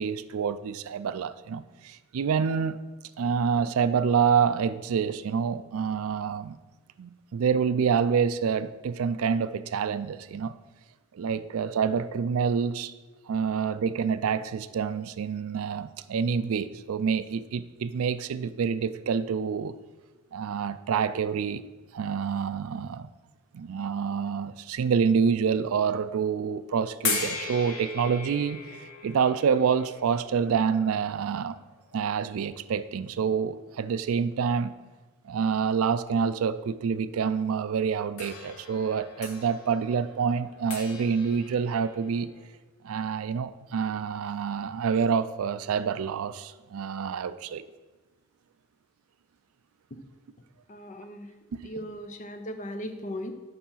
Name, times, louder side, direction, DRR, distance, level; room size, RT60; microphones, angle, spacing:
voice 1, 0.0-2.8 3.2-6.6 7.0-10.5 11.1-12.9 13.3-19.7 20.3-21.6 21.9-23.1 23.5-31.6 31.9-34.7 35.2-42.3 42.8-47.6, right 6 dB, 75° right, 14 dB, 0.4 m, -27 dB
sound 1, 27.0-32.1 32.9-33.0 38.2-42.5, left 5 dB, 90° left, 1.3 m, -38 dB
voice 2, 50.7-51.3 51.6-53.3, equal, 35° left, 7 dB, 0.6 m, -37 dB
6.9 x 5.5 x 5.6 m, 1.2 s
head